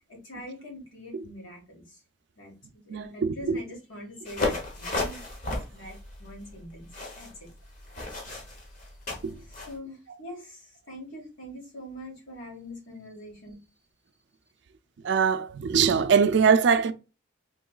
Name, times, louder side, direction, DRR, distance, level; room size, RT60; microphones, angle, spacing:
voice 1, 0.1-2.0 2.4-5.2 5.7-6.9 7.1-7.3 9.4-13.6, left 1 dB, 85° left, 1.6 m, -43 dB
voice 2, 2.9-3.6 9.2-9.3 15.0-16.9, right 6 dB, 60° right, 0.3 m, -22 dB
sound 1, 4.3-9.7, left 2 dB, 40° left, 0.8 m, -34 dB
3.7 x 3.0 x 2.3 m
head